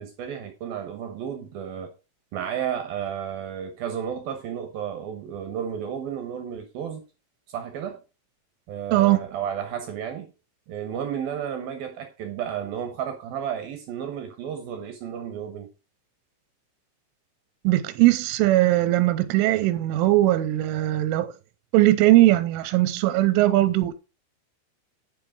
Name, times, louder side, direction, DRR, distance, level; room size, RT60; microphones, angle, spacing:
voice 1, 0.0-1.9 2.3-7.0 7.5-8.0 8.7-10.3 10.7-15.7, right 8 dB, 70° right, 2.3 m, -32 dB
voice 2, 17.6-21.3 21.7-23.9, right 16 dB, 90° right, 3.2 m, -20 dB
11.5 x 5.7 x 4.9 m
omnidirectional pair, 5.6 m